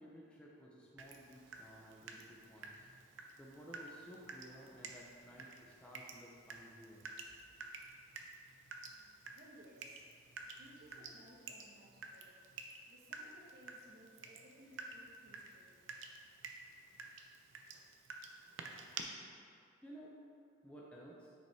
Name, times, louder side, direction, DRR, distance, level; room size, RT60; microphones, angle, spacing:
voice 1, 0.0-2.9 3.4-7.1 19.8-20.2 20.6-21.3, equal, 5° left, -5 dB, 0.7 m, -55 dB
Water tap faucet / Drip, 1.0-19.0, right 4 dB, 90° right, 0.6 m, -52 dB
voice 2, 9.3-10.2 10.6-12.3 12.9-15.8, equal, 55° right, -3 dB, 1.3 m, -61 dB
9.2 x 5.3 x 3.5 m, 2.4 s
head